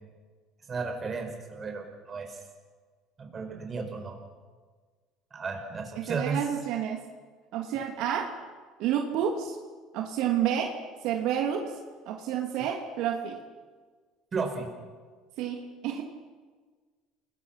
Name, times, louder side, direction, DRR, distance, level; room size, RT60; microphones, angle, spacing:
voice 1, 0.7-2.4 3.2-4.2 5.3-6.4 14.3-14.7, right 4 dB, 25° right, 3 dB, 5.2 m, -34 dB
voice 2, 6.0-7.0 7.5-8.3 8.8-9.6 9.9-10.7 11.0-11.6 12.1-13.4 15.4-16.0, right 9 dB, 65° right, 2 dB, 2.6 m, -29 dB
29.5 x 21.0 x 5.9 m, 1.5 s
cardioid pair, 145°, 0 cm